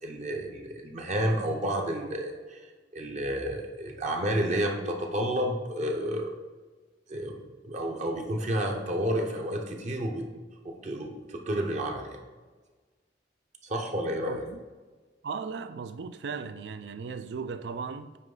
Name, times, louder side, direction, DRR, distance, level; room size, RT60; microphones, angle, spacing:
voice 1, 0.0-2.6 2.9-6.4 7.1-10.3 10.6-12.2 13.6-14.4, right 1 dB, 45° right, 0.8 m, -30 dB
voice 2, 14.3-14.6 15.2-18.2, right 5 dB, 70° right, 0.4 m, -37 dB
9.0 x 3.1 x 3.8 m
head